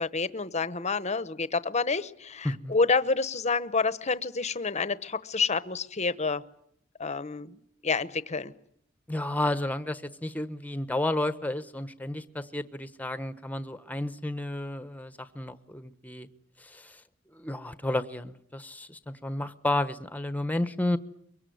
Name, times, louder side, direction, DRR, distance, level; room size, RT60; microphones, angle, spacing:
voice 1, 0.0-6.4 7.0-7.6 7.8-8.5, left 4 dB, 35° left, 15 dB, 1.0 m, -28 dB
voice 2, 9.1-16.3 16.6-17.0 17.3-21.0, left 1 dB, 10° left, 12 dB, 1.1 m, -32 dB
23.5 x 23.0 x 9.5 m, 0.73 s
head